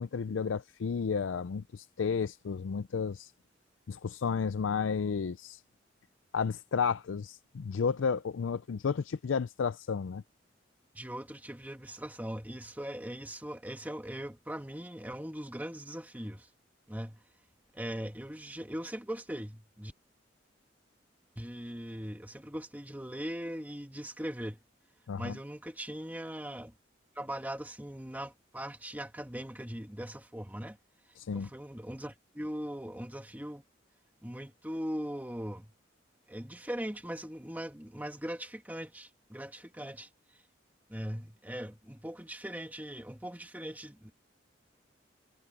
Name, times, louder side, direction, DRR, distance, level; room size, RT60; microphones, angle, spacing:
voice 1, 0.0-3.3 3.9-5.6 6.3-10.2 25.1-25.4 31.2-31.5, left 6 dB, 85° left, 0.4 m, -32 dB
voice 2, 10.9-16.5 16.9-17.2 17.7-19.9 21.4-24.6 25.2-26.7 27.2-30.8 31.3-33.6 34.2-35.7 36.3-40.4 40.9-44.1, equal, 10° right, 1.9 m, -40 dB
head